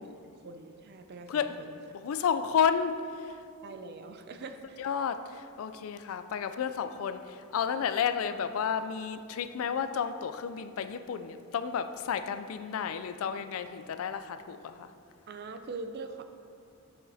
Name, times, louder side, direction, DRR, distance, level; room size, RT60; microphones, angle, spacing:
voice 1, 0.0-1.8 3.6-4.9 15.3-16.2, right 3 dB, 50° right, 7 dB, 0.4 m, -43 dB
voice 2, 2.0-3.4 4.8-14.9, left 7 dB, 65° left, 10 dB, 0.3 m, -31 dB
7.3 x 7.1 x 2.7 m, 2.4 s
head